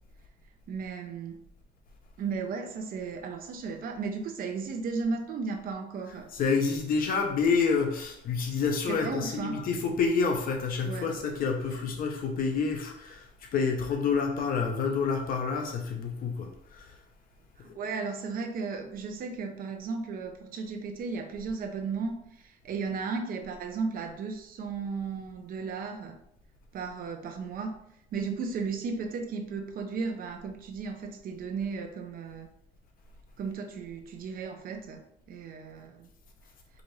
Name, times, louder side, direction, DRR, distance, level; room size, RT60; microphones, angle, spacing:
voice 1, 0.7-1.4 2.2-6.3 8.9-9.6 10.8-11.2 17.6-26.2 26.7-27.7 28.1-32.5 33.4-35.0 35.3-36.1, right 4 dB, 60° right, 5 dB, 0.7 m, -35 dB
voice 2, 6.1-16.9, left 5 dB, 55° left, 3 dB, 0.9 m, -28 dB
5.0 x 2.6 x 3.2 m, 0.73 s
cardioid pair, 110°, 17 cm